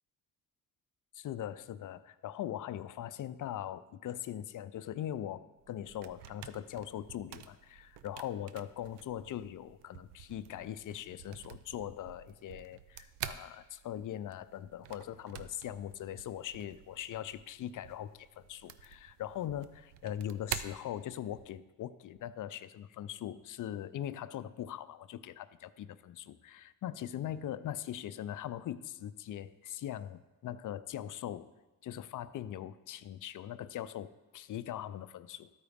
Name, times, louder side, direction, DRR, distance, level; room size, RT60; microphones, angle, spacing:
voice 1, 1.1-31.5 31.8-35.5, left 11 dB, 50° left, 14 dB, 0.5 m, -41 dB
sound 1, 5.6-21.6, right 10 dB, 85° right, 0.5 m, -48 dB
12.5 x 4.7 x 3.5 m, 1.1 s
supercardioid pair, 65°, 40 cm